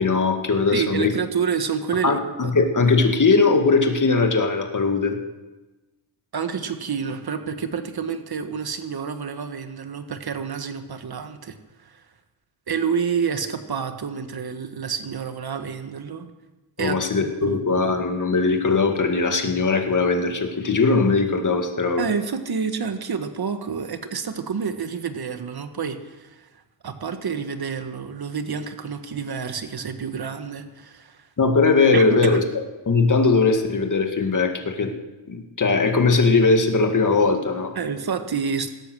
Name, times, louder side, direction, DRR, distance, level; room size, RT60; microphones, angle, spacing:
voice 1, 0.0-1.2 2.0-5.2 16.8-22.1 31.4-32.4 32.9-34.9 35.3-37.7, left 4 dB, 40° left, 4 dB, 2.1 m, -20 dB
voice 2, 0.7-2.5 6.3-11.6 11.9-12.0 12.7-16.3 16.8-17.6 22.0-26.5 26.8-31.2 31.9-32.4 37.7-38.7, right 6 dB, 50° right, 8 dB, 1.6 m, -28 dB
17.0 x 13.0 x 6.3 m, 1.1 s
cardioid pair, 95°, 49 cm